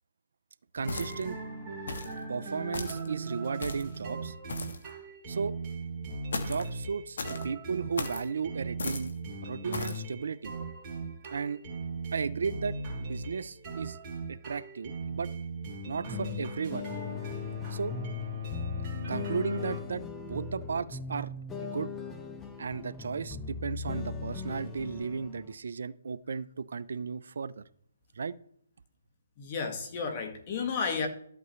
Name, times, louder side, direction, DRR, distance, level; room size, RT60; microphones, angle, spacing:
voice 1, 0.7-1.4 2.3-4.3 5.3-5.5 6.4-7.2 7.4-9.1 9.4-10.5 11.3-11.6 12.1-14.0 14.3-15.3 15.9-16.9 17.7-17.9 19.1-20.0 20.3-21.3 21.6-21.9 22.6-27.6 28.2-28.3, right 5 dB, 70° right, 0.5 m, -34 dB
sound 1, 0.8-19.8, right 1 dB, 25° right, 2.9 m, -39 dB
sound 2, 0.9-1.4 1.9-2.2 2.7-3.1 3.6-4.0 4.5-4.9 6.3-6.7 7.2-7.5 8.0-8.3 8.8-9.1 9.7-10.0, left 3 dB, 70° left, 1.5 m, -36 dB
sound 3, 16.1-25.5, left 3 dB, 10° left, 0.8 m, -39 dB
voice 2, 29.4-31.1, left 5 dB, 35° left, 1.7 m, -32 dB
13.0 x 8.2 x 3.2 m
hypercardioid pair, 155°, 0 cm